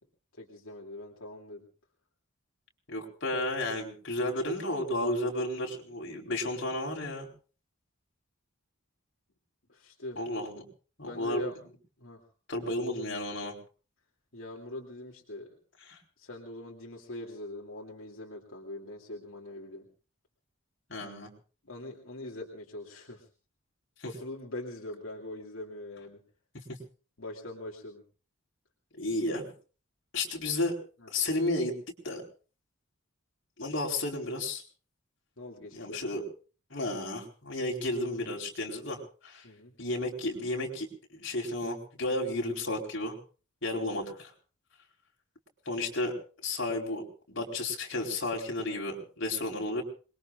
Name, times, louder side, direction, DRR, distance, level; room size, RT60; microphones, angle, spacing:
voice 1, 0.4-1.6 9.7-10.2 11.0-11.6 12.0-12.2 14.3-15.5 16.2-19.8 21.6-23.3 24.0-26.2 27.2-28.0 31.0-31.1 35.4-36.0 39.4-39.7, left 1 dB, 75° left, -1 dB, 2.7 m, -42 dB
voice 2, 2.9-7.3 10.2-10.7 11.0-11.4 12.5-13.6 15.9-16.0 20.9-21.3 24.0-24.1 29.0-29.4 30.1-30.8 31.1-31.7 32.0-32.2 33.6-34.6 35.7-36.2 36.7-39.5 39.8-43.2 43.6-44.3 45.7-46.1 46.4-49.8, left 1 dB, 60° left, 0 dB, 4.4 m, -32 dB
27.0 x 21.5 x 2.5 m, 0.37 s
head